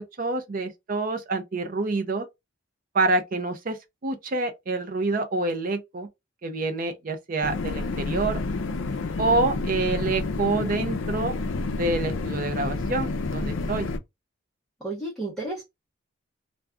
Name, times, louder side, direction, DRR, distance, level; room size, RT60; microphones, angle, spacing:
voice 1, 0.0-2.3 2.9-6.1 6.4-8.4 9.2-11.3 11.7-13.9, right 3 dB, 40° right, 0.4 m, -27 dB
sound 1, 7.4-14.0, left 3 dB, 65° left, 0.4 m, -29 dB
voice 2, 14.8-15.6, right 2 dB, 5° left, 0.7 m, -32 dB
2.3 x 2.2 x 3.6 m
head